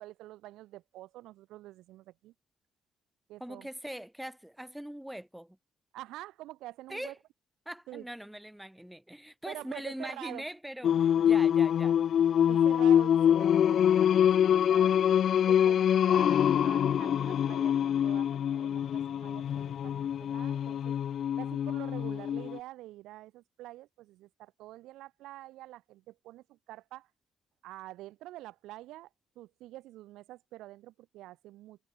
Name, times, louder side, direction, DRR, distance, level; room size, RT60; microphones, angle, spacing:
voice 1, 0.0-2.3 3.3-3.7 5.9-7.1 7.9-8.1 9.5-10.4 12.5-14.1 14.5-14.9 15.5-21.0 21.4-27.1 27.6-29.1 29.3-31.8, right 16 dB, 90° right, 6.7 m, -47 dB
voice 2, 3.4-5.6 6.9-7.1 7.6-12.2, equal, 5° right, 1.2 m, -42 dB
Singing, 10.8-22.6, left 9 dB, 65° left, 0.3 m, -25 dB
cardioid pair, 80°, 0 cm